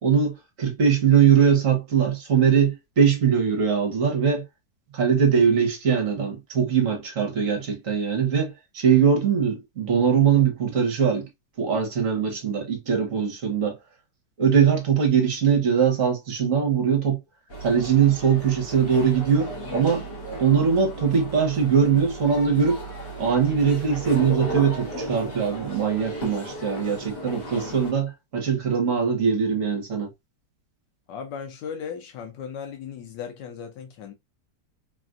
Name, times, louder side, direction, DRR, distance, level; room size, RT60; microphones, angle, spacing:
voice 1, 0.0-4.4 4.9-11.3 11.6-13.8 14.4-17.2 17.6-20.1 20.4-22.8 23.2-30.1, right 7 dB, 55° right, 1.3 m, -21 dB
sound 1, 17.5-27.9, right 1 dB, 55° left, 1.5 m, -35 dB
voice 2, 31.1-34.1, left 7 dB, 85° left, 1.3 m, -36 dB
3.4 x 2.4 x 2.4 m
omnidirectional pair, 1.8 m